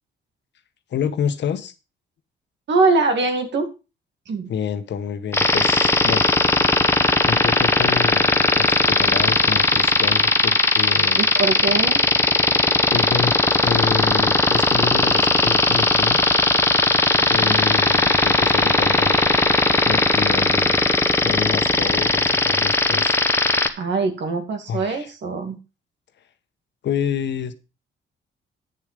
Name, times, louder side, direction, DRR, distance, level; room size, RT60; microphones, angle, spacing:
voice 1, 0.9-1.7 4.5-6.3 7.2-11.3 12.9-16.2 17.3-19.2 19.9-20.8 21.2-23.2 24.7-25.1 26.8-27.5, left 7 dB, 65° left, 1.2 m, -28 dB
voice 2, 2.7-3.7 4.3-4.5 11.2-12.1 17.4-17.6 23.8-25.6, right 3 dB, 65° right, 2.4 m, -22 dB
sound 1, 5.3-23.7, left 2 dB, 10° left, 1.2 m, -17 dB
9.1 x 6.8 x 5.1 m
cardioid pair, 90°, 20 cm